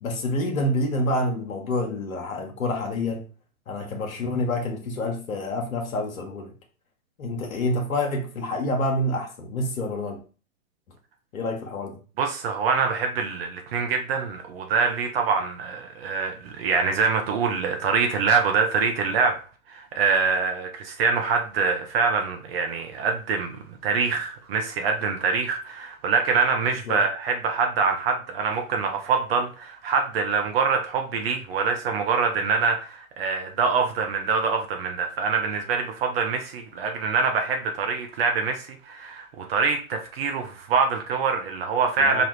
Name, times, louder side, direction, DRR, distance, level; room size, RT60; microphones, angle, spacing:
voice 1, 0.0-3.2 3.7-6.5 7.2-10.2 11.3-12.0 26.9-27.0 42.0-42.2, left 1 dB, 75° left, 1.0 m, -27 dB
voice 2, 12.2-19.4 19.7-42.2, right 5 dB, 45° right, 0.7 m, -25 dB
5.0 x 2.4 x 3.1 m
hypercardioid pair, 115°, 42 cm